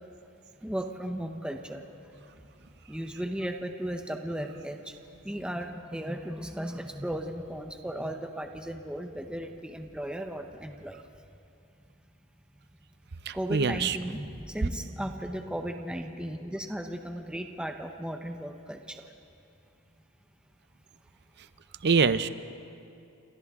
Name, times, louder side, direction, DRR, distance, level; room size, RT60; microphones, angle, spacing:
voice 1, 0.6-1.8 2.1-2.3 2.9-5.0 5.2-11.0 13.3-19.1, right 1 dB, 5° right, 4 dB, 0.9 m, -36 dB
voice 2, 13.5-14.0 21.8-22.3, right 5 dB, 50° right, 13 dB, 0.6 m, -23 dB
29.0 x 25.0 x 3.7 m, 2.6 s
head